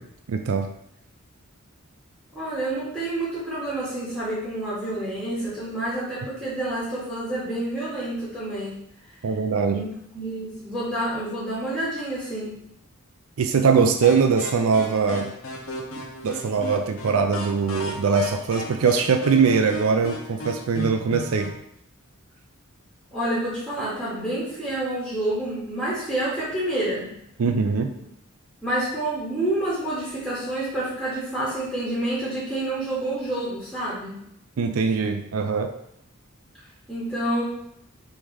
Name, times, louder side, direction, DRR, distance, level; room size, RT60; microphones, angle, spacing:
voice 1, 0.3-0.7 9.2-9.8 13.4-15.3 16.2-21.5 27.4-27.9 34.6-35.7, right 5 dB, 85° right, 6 dB, 0.4 m, -22 dB
voice 2, 2.3-8.8 9.2-9.3 9.7-9.9 10.1-12.6 23.1-27.1 28.6-34.2 36.9-37.4, right 1 dB, ahead, -10 dB, 1.5 m, -28 dB
sound 1, 14.0-21.6, left 1 dB, 70° left, 0.8 m, -36 dB
3.6 x 3.2 x 4.7 m, 0.74 s
head